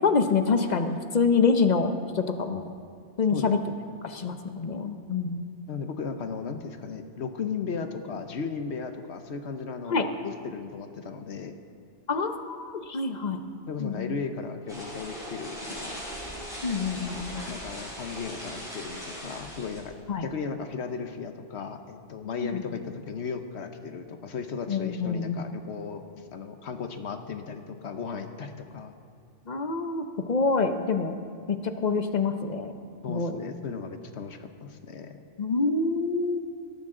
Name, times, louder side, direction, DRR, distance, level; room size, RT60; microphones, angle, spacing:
voice 1, 0.0-2.7 3.2-3.6 4.0-5.4 9.9-10.1 12.1-13.4 13.8-14.2 16.6-17.4 20.1-20.3 22.4-22.6 24.7-25.5 29.5-31.2 31.5-32.7 33.1-33.3 35.4-36.4, left 4 dB, 40° left, 7 dB, 0.9 m, -26 dB
voice 2, 5.7-11.5 13.7-16.0 17.5-19.9 20.2-28.9 33.0-35.2, left 5 dB, 70° left, 7 dB, 1.2 m, -36 dB
sound 1, 14.7-19.8, equal, 5° right, 4.4 m, -39 dB
18.5 x 14.0 x 3.8 m, 2.5 s
omnidirectional pair, 1.2 m